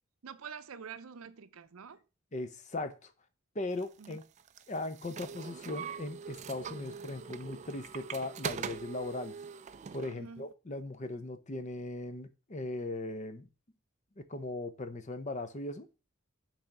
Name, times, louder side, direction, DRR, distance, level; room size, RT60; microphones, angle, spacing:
voice 1, 0.2-2.0 4.0-4.2 10.2-10.5, right 6 dB, 90° right, 0.6 m, -46 dB
voice 2, 2.3-3.1 3.5-4.2 4.7-9.3 9.9-13.5 14.2-15.9, left 2 dB, 35° left, 0.7 m, -38 dB
sound 1, 3.8-10.2, right 6 dB, 35° right, 0.3 m, -42 dB
6.3 x 3.5 x 5.9 m
head